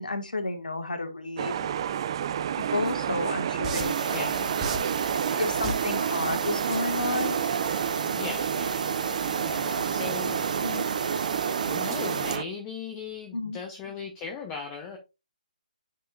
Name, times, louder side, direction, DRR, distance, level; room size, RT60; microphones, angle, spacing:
voice 1, 0.0-1.7 2.7-4.5 5.4-7.4 10.6-10.8 13.3-13.6, left 2 dB, 75° left, 1.9 m, -31 dB
sound 1, 1.4-12.4, right 9 dB, 35° right, 0.4 m, -30 dB
sound 2, 2.9-3.0 3.6-4.1 4.6-5.0 5.6-6.0 6.6-6.8, right 2 dB, 10° right, 1.2 m, -32 dB
sound 3, 3.8-12.4, right 4 dB, 65° right, 1.1 m, -33 dB
voice 2, 8.2-8.9 9.3-10.5 11.7-15.0, left 5 dB, 20° left, 0.9 m, -38 dB
10.0 x 4.8 x 2.5 m
figure-of-eight pair, 145°, 5 cm